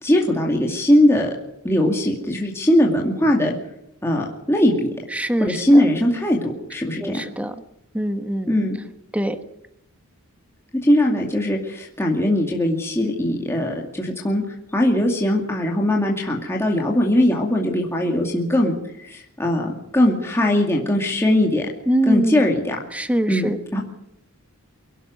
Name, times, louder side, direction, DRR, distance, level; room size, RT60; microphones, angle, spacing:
voice 1, 0.0-1.3 1.6-3.6 4.0-4.9 5.4-7.3 8.5-8.8 10.8-14.4 14.7-21.7 22.1-22.8 23.3-23.5 23.7-23.8, left 1 dB, 10° left, -1 dB, 2.3 m, -20 dB
voice 2, 5.1-5.8 7.0-7.5 7.9-8.5 9.1-9.4 21.9-22.4 22.9-23.6, right 1 dB, 5° right, 9 dB, 1.4 m, -23 dB
23.5 x 11.5 x 9.4 m, 0.81 s
head